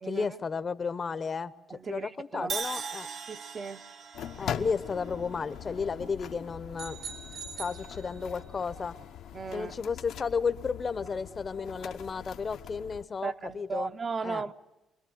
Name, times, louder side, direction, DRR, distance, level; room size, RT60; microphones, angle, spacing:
voice 1, 0.0-1.5 1.9-3.1 4.4-7.0 7.6-8.9 9.5-13.9 14.2-14.5, left 5 dB, 35° left, 0.8 m, -33 dB
voice 2, 1.7-2.5 3.3-3.8 9.3-9.7 13.2-14.5, right 5 dB, 35° right, 0.7 m, -36 dB
Crash cymbal, 2.5-6.5, right 5 dB, 55° right, 1.2 m, -40 dB
sound 1, 4.1-13.0, left 9 dB, 80° left, 1.0 m, -42 dB
sound 2, 6.8-8.6, right 6 dB, 85° right, 3.6 m, -43 dB
26.0 x 21.0 x 7.8 m
cardioid pair, 110°, 0 cm